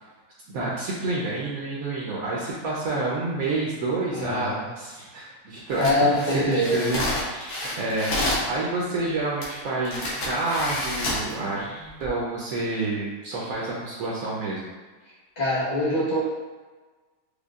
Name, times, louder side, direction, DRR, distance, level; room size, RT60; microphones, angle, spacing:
voice 1, 0.5-6.1 6.5-8.1 8.5-14.7, right 2 dB, 70° right, -6 dB, 1.0 m, -29 dB
voice 2, 4.1-4.6 5.8-6.8 15.4-16.2, left 1 dB, 30° left, -8 dB, 1.1 m, -24 dB
sound 1, 5.7-8.5 9.4-9.5 9.9-11.3 11.9-12.1, left 1 dB, 75° left, 1.3 m, -29 dB
5.0 x 2.2 x 2.3 m, 1.3 s
omnidirectional pair, 1.6 m